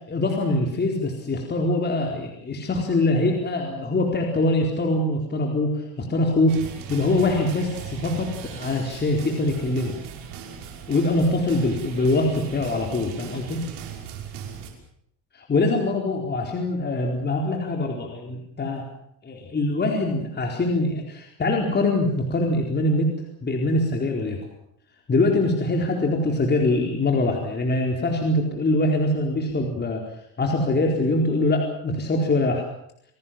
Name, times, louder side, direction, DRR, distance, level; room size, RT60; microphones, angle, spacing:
voice 1, 0.0-6.6 6.9-10.0 10.9-13.6 15.4-18.8 19.2-23.1 23.4-24.4 25.1-30.0 30.4-32.6, left 2 dB, 25° left, 1 dB, 4.3 m, -23 dB
sound 1, 6.5-14.7, right 7 dB, 80° right, 6.0 m, -38 dB
28.0 x 18.5 x 7.5 m, 0.71 s
cardioid pair, 120°, 39 cm